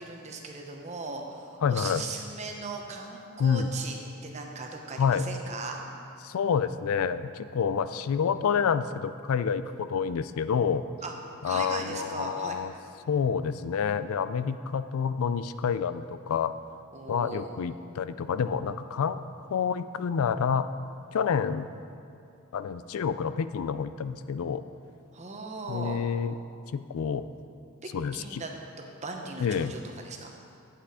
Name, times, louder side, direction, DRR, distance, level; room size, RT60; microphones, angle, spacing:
voice 1, 0.0-3.9 4.2-5.9 11.0-11.1 11.4-12.6 16.9-17.5 25.1-26.0 27.8-28.5 28.8-30.3, right 3 dB, 30° right, 2 dB, 0.9 m, -38 dB
voice 2, 1.6-2.0 3.4-3.7 5.0-5.2 6.2-10.8 11.4-12.7 13.1-16.5 17.1-19.2 19.5-20.7 21.1-21.7 22.5-24.6 25.7-26.4 26.7-27.2 27.9-28.4 29.4-29.7, left 6 dB, 70° left, 13 dB, 0.3 m, -28 dB
8.4 x 8.1 x 4.9 m, 2.7 s
head